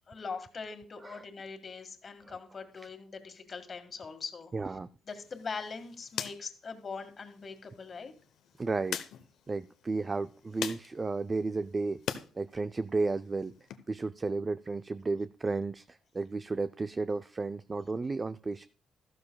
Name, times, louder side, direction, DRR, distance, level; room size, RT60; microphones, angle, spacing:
voice 1, 0.1-4.5 5.1-8.1, left 5 dB, 40° left, 6 dB, 1.7 m, -42 dB
voice 2, 4.5-4.9 8.6-9.0 9.5-12.0 12.4-13.5 13.9-18.7, right 3 dB, 25° right, 12 dB, 0.4 m, -33 dB
sound 1, 5.1-12.3 12.6-13.8, left 9 dB, 80° left, 0.8 m, -43 dB
13.5 x 12.5 x 2.3 m, 0.39 s
cardioid pair, 90°, 0 cm